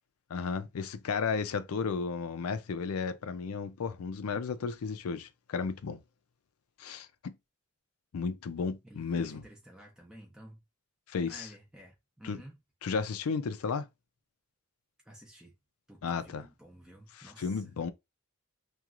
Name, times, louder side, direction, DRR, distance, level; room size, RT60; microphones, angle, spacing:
voice 1, 0.3-6.0 6.8-7.3 8.1-9.4 11.1-11.5 12.2-12.4 12.8-13.9 16.0-16.4 17.2-17.9, left 5 dB, 80° left, 0.4 m, -33 dB
voice 2, 8.8-10.6 11.3-12.6 15.0-15.5 15.9-17.7, right 1 dB, 5° right, 0.5 m, -52 dB
2.9 x 2.3 x 2.4 m
head